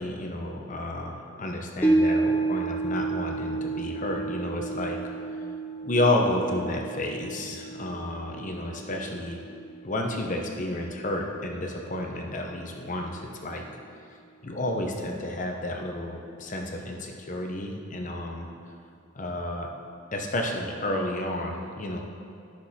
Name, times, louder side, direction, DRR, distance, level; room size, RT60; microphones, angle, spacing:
voice 1, 0.0-5.0 5.8-9.4 9.8-13.6 14.4-18.5 19.1-19.7 20.1-22.0, left 1 dB, 40° left, 2 dB, 0.9 m, -31 dB
sound 1, 1.8-12.2 12.6-12.7, right 3 dB, 10° left, 0.9 m, -31 dB
12.0 x 6.2 x 4.3 m, 2.4 s
head